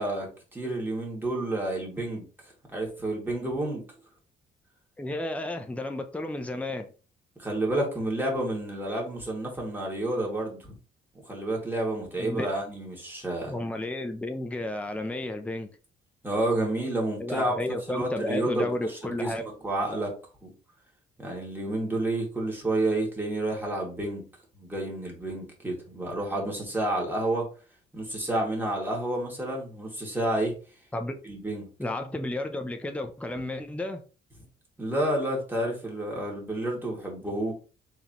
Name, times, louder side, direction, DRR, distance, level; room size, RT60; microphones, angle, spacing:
voice 1, 0.0-2.3 2.7-3.8 7.4-10.7 11.3-13.5 16.2-17.6 17.9-19.3 19.6-20.1 20.4-20.5 21.2-24.2 24.6-27.5 27.9-30.5 31.2-31.7 34.8-37.5, right 1 dB, 10° right, 2.3 m, -30 dB
voice 2, 5.0-6.9 12.2-12.5 13.5-15.7 17.2-19.4 30.9-31.2 31.8-34.0, left 1 dB, 5° left, 0.6 m, -32 dB
4.8 x 3.4 x 3.0 m
cardioid pair, 90°, 20 cm